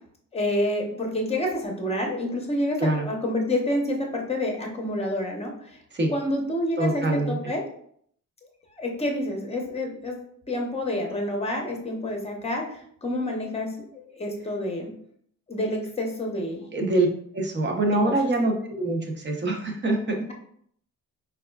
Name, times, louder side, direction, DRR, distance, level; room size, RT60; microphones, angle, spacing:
voice 1, 0.3-5.8 6.1-7.7 8.7-10.2 10.5-14.9 15.5-16.6 18.1-18.2, left 1 dB, 15° left, 1 dB, 0.8 m, -28 dB
voice 2, 6.8-7.4 16.7-17.1 17.3-20.3, right 2 dB, 30° right, 2 dB, 0.7 m, -24 dB
4.1 x 2.4 x 2.3 m, 0.65 s
cardioid pair, 85°, 35 cm